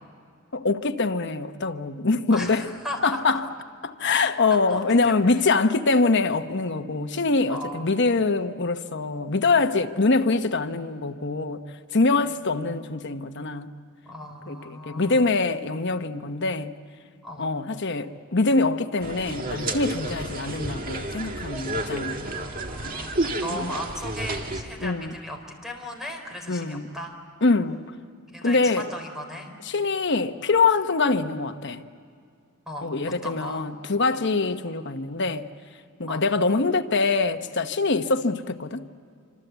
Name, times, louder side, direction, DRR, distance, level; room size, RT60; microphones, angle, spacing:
voice 1, 0.5-2.7 3.0-3.4 3.8-11.6 11.9-13.7 14.5-16.7 17.4-22.3 23.5-23.7 24.8-25.1 26.5-26.9 27.4-27.9 28.4-28.9 29.7-31.8 32.8-35.5 36.0-38.9, left 3 dB, 60° left, 1.1 m, -24 dB
voice 2, 2.3-3.4 4.5-5.3 7.5-8.1 12.2-12.3 14.0-15.3 17.2-17.5 20.1-20.2 22.3-27.2 28.3-29.5 32.7-32.9 33.2-33.6 36.1-36.2, left 1 dB, ahead, 4.0 m, -36 dB
sound 1, 19.0-24.6, right 2 dB, 45° right, 1.9 m, -31 dB
26.5 x 26.0 x 8.2 m
head